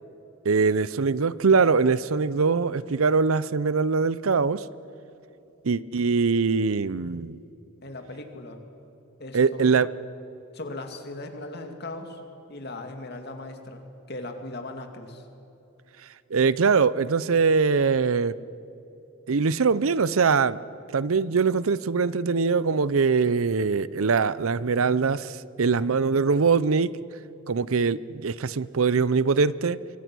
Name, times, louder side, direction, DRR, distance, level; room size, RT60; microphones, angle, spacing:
voice 1, 0.4-4.6 5.6-7.4 9.3-9.9 16.3-18.3 19.3-20.6 20.9-26.9 27.5-29.8, right 5 dB, 75° right, 18 dB, 0.6 m, -22 dB
voice 2, 7.8-8.6 9.2-9.8 10.5-12.2 12.5-15.2, left 2 dB, 50° left, 5 dB, 2.4 m, -38 dB
26.0 x 24.0 x 6.2 m, 2.9 s
head